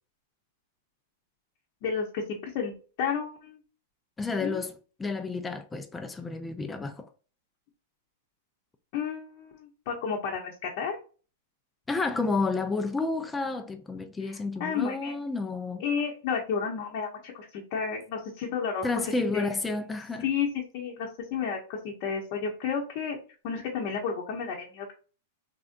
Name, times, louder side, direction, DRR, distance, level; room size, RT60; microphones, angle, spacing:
voice 1, 1.8-2.7 3.0-3.6 4.4-4.6 8.9-11.0 14.2-15.1 15.8-18.9 19.3-19.5 20.2-20.5 20.7-23.2 23.4-24.9, left 6 dB, 50° left, 0.7 m, -32 dB
voice 2, 4.2-7.1 11.9-15.8 18.8-20.2, left 3 dB, 10° left, 0.3 m, -31 dB
3.4 x 2.5 x 2.5 m
supercardioid pair, 145°, 0 cm